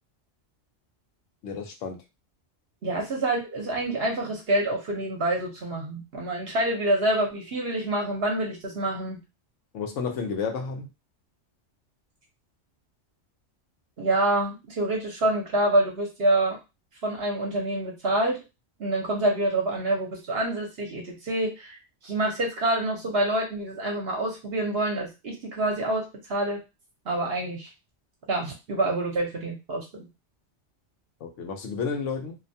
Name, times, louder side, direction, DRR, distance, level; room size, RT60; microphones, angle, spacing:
voice 1, 1.4-2.0 9.7-10.9 31.2-32.4, left 5 dB, 85° left, 4 dB, 1.0 m, -31 dB
voice 2, 2.8-9.2 14.0-16.6 17.0-18.4 18.8-21.8 22.0-26.6 27.1-27.7 28.3-30.1, right 1 dB, 60° right, 0 dB, 0.9 m, -27 dB
2.7 x 2.1 x 2.6 m, 0.25 s
omnidirectional pair, 1.2 m